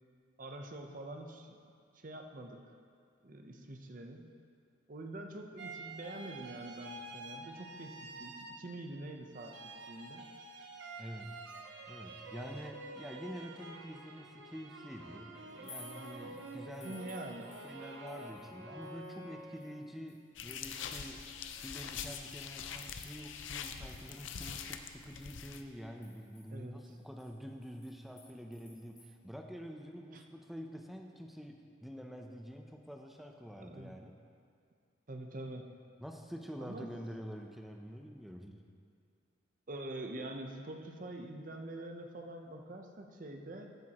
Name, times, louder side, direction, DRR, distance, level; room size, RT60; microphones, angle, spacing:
voice 1, 0.4-1.6 1.9-2.7 3.2-4.3 4.9-10.2 16.8-17.5 26.5-27.0 30.1-30.2 33.6-34.0 35.1-35.7 36.6-36.9 39.7-43.7, right 1 dB, 45° right, 4 dB, 0.8 m, -45 dB
sound 1, 5.6-9.0 9.3-19.9, right 2 dB, 75° right, 0.9 m, -48 dB
voice 2, 11.0-11.4 11.9-17.0 17.6-34.2 36.0-38.6, equal, ahead, 3 dB, 0.6 m, -47 dB
sound 2, 15.5-18.6 18.8-22.0 22.5-22.6 23.0-25.0 25.2-25.3 25.7-29.1, left 3 dB, 15° left, 1.6 m, -58 dB
sound 3, 20.3-25.6, left 7 dB, 80° left, 0.6 m, -44 dB
14.5 x 8.9 x 3.0 m, 2.3 s
head